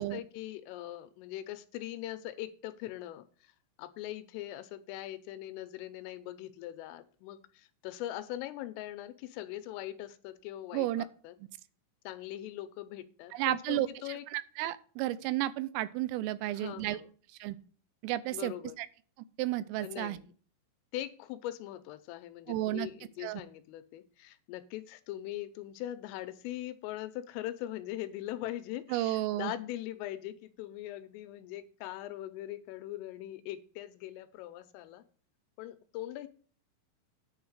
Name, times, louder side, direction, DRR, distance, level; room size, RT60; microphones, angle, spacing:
voice 1, 0.0-3.5 3.8-11.4 12.0-14.3 16.5-17.1 18.3-18.8 19.8-20.3 20.9-35.0 35.6-36.3, left 14 dB, 80° left, 11 dB, 3.2 m, -41 dB
voice 2, 10.7-11.0 13.3-13.9 14.3-17.0 17.4-17.6 18.0-18.9 19.4-20.2 22.5-22.9 23.2-23.4 28.9-29.5, right 15 dB, 85° right, 15 dB, 3.3 m, -32 dB
10.0 x 4.7 x 8.0 m, 0.42 s
omnidirectional pair, 6.0 m